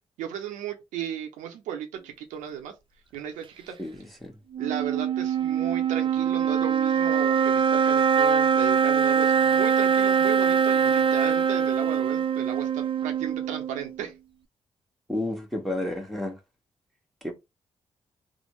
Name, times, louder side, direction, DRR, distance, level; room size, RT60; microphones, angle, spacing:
voice 1, 0.2-2.7 3.1-3.8 4.6-14.1, right 9 dB, 85° right, 0.6 m, -35 dB
voice 2, 3.8-4.3 15.1-16.4 17.2-17.3, left 1 dB, ahead, 1.3 m, -31 dB
sound 1, 4.5-14.0, right 7 dB, 45° right, 0.5 m, -23 dB
3.2 x 2.1 x 3.0 m
supercardioid pair, 45°, 12 cm